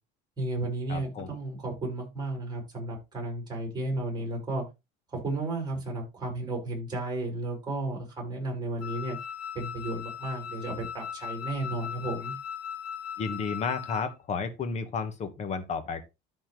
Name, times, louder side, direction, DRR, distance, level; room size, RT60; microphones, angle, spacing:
voice 1, 0.4-4.6 5.1-9.2 9.5-12.3, right 2 dB, 20° right, 5.8 m, -33 dB
voice 2, 0.9-1.3 13.2-16.0, left 5 dB, 40° left, 1.5 m, -32 dB
Wind instrument woodwind instrument, 8.8-14.2, left 8 dB, 80° left, 1.8 m, -38 dB
13.0 x 4.4 x 3.3 m
cardioid pair, 135°, 19 cm